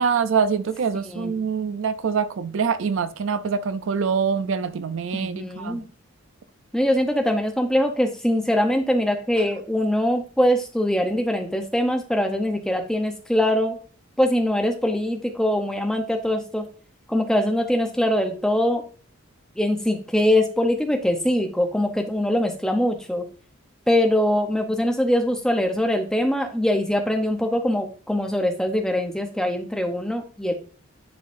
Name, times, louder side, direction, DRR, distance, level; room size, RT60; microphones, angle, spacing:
voice 1, 0.0-5.8, right 6 dB, 60° right, 0.4 m, -24 dB
voice 2, 5.1-5.9 6.7-13.8 14.2-16.7 17.1-18.8 19.6-23.3 23.9-30.5, left 1 dB, 5° left, 0.7 m, -22 dB
10.5 x 3.8 x 2.5 m
head